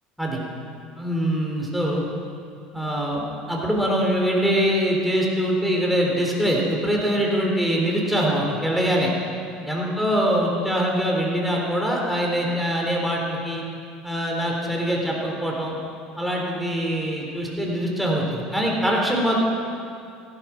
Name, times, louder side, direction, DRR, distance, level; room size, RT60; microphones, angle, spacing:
voice 1, 1.0-2.1 2.7-9.1 9.7-13.6 14.0-15.8 16.2-19.4, equal, ahead, -2 dB, 3.7 m, -23 dB
14.5 x 12.5 x 6.0 m, 2.4 s
supercardioid pair, 100°, 3 cm